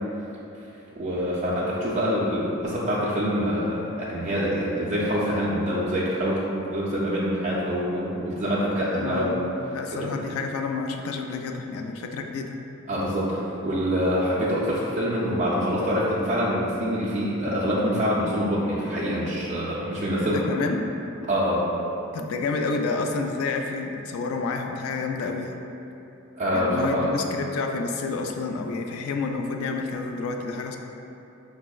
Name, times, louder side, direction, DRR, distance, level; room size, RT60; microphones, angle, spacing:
voice 1, 1.0-6.4 6.7-9.4 9.9-10.1 12.9-20.4 21.3-21.7 26.4-27.1, equal, 30° right, -8 dB, 0.4 m, -25 dB
voice 2, 8.9-12.6 20.2-20.9 22.1-25.6 26.5-30.8, left 4 dB, 85° left, 5 dB, 0.3 m, -29 dB
5.2 x 2.0 x 2.3 m, 2.9 s
head